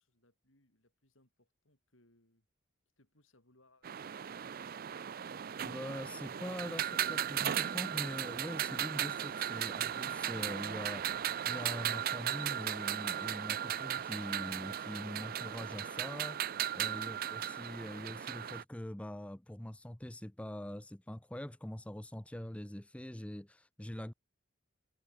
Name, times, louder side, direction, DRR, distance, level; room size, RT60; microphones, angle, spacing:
voice 1, 0.0-2.5 3.0-4.2, left 1 dB, 70° left, 7.9 m, -70 dB
sound 1, 3.8-18.6, right 10 dB, 45° right, 0.4 m, -36 dB
voice 2, 5.6-24.1, left 1 dB, 5° left, 0.5 m, -43 dB
head